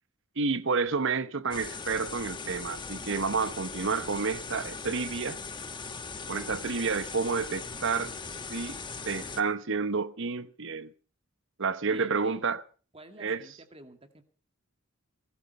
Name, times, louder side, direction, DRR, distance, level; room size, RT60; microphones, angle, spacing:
voice 1, 0.4-5.4 6.3-8.1 8.5-8.8 9.1-10.9 11.6-12.6 13.2-13.4, right 4 dB, 60° right, 1.0 m, -30 dB
sound 1, 1.5-9.4, left 4 dB, 20° left, 1.2 m, -39 dB
voice 2, 11.9-12.5 12.9-14.2, right 2 dB, 30° right, 2.0 m, -50 dB
19.5 x 13.5 x 5.5 m
head